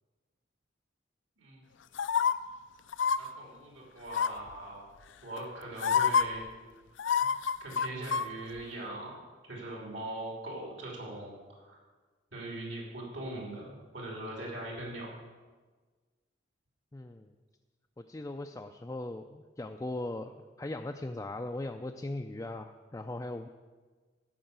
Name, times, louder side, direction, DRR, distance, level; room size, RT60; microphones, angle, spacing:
sound 1, 2.0-2.3 2.9-3.2 4.1-4.5 5.4-5.5 5.8-6.2 7.0-8.3 8.6-8.7, left 6 dB, 80° left, 0.4 m, -27 dB
voice 1, 3.2-4.9 5.2-6.4 7.6-9.2 9.5-11.3 11.7-11.8 12.3-15.1, right 1 dB, 75° right, -2 dB, 3.1 m, -41 dB
voice 2, 16.9-17.3 18.0-23.5, left 2 dB, 15° left, 4 dB, 0.3 m, -39 dB
12.5 x 5.6 x 8.0 m, 1.4 s
head